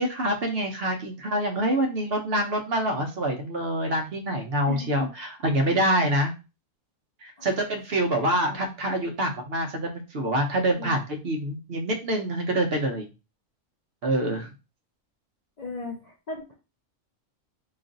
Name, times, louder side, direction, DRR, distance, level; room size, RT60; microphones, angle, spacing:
voice 1, 0.0-6.3 7.2-13.1 14.0-14.5, right 1 dB, 55° right, 2 dB, 0.9 m, -26 dB
voice 2, 4.7-5.1 7.4-7.5 8.0-8.4 10.8-11.0 15.6-16.5, left 3 dB, 50° left, -1 dB, 0.5 m, -37 dB
3.0 x 2.4 x 3.8 m, 0.29 s
omnidirectional pair, 1.3 m